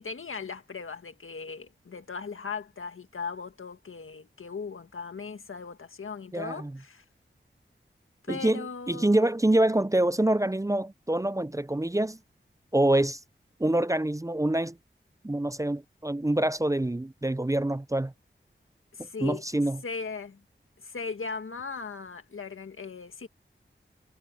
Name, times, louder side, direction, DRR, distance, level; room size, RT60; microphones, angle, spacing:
voice 1, 0.0-7.0 8.2-9.3 18.9-19.4 19.8-20.4 20.8-23.3, left 5 dB, 85° left, 1.8 m, -38 dB
voice 2, 6.3-6.7 8.3-12.2 12.7-13.2 13.6-14.8 15.2-18.1 19.2-19.8, right 1 dB, 15° right, 0.6 m, -26 dB
cardioid pair, 40°, 21 cm